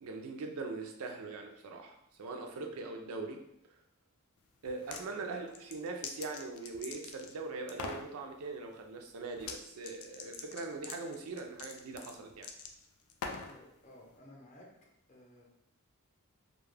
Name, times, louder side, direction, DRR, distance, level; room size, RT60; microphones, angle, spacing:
voice 1, 0.0-3.4 4.6-12.5, right 3 dB, 85° right, 3 dB, 0.4 m, -41 dB
sound 1, 4.7-5.1 5.5-7.4 7.7-8.1 9.4-9.6 9.8-13.6, left 5 dB, 75° left, 0.3 m, -43 dB
voice 2, 5.1-5.6 13.5-14.7 15.1-15.5, equal, 35° left, -3 dB, 0.6 m, -55 dB
2.3 x 2.1 x 3.2 m, 0.83 s
head